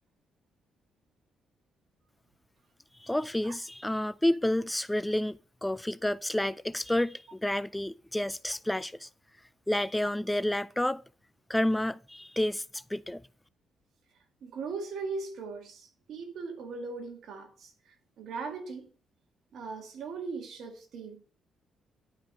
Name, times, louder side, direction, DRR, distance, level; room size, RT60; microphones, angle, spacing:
voice 1, 3.0-9.1 9.7-11.0 11.5-13.2, left 1 dB, 10° left, 0.4 m, -30 dB
voice 2, 14.4-18.9 19.5-21.2, right 4 dB, 70° right, 2.1 m, -39 dB
11.0 x 5.1 x 5.3 m
cardioid pair, 75°, 0 cm